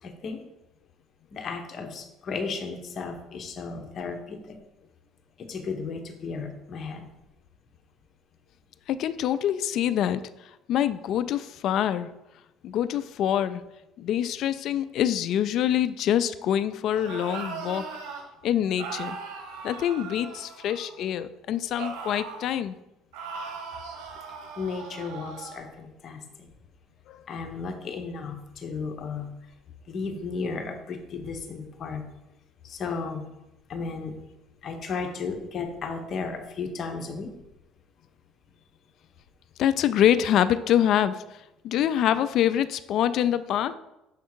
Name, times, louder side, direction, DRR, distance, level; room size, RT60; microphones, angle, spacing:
voice 1, 0.0-0.4 1.3-4.6 5.4-7.1 24.6-26.5 27.3-29.3 29.9-32.0 32.6-33.3 33.7-34.2 34.6-37.3, left 4 dB, 45° left, 5 dB, 0.9 m, -34 dB
voice 2, 8.9-10.2 10.7-12.1 12.6-13.6 14.0-17.9 18.4-19.2 19.6-22.8 27.1-27.2 39.6-41.2 41.6-43.7, left 10 dB, 60° left, 13 dB, 0.3 m, -25 dB
sound 1, 16.9-18.2 18.8-21.0 21.8-22.5 23.1-25.6, right 5 dB, 90° right, 1.1 m, -39 dB
6.5 x 3.6 x 4.5 m, 0.93 s
cardioid pair, 110°, 0 cm